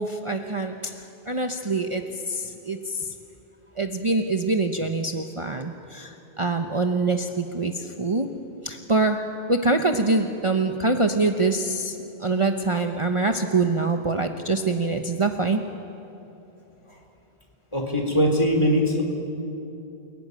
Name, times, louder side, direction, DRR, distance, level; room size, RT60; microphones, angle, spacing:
voice 1, 0.0-3.2 3.7-8.4 8.6-15.7, right 3 dB, 30° right, 5 dB, 1.0 m, -25 dB
voice 2, 17.7-19.0, equal, 25° left, 1 dB, 4.0 m, -21 dB
29.0 x 20.5 x 9.9 m, 2.9 s
omnidirectional pair, 1.1 m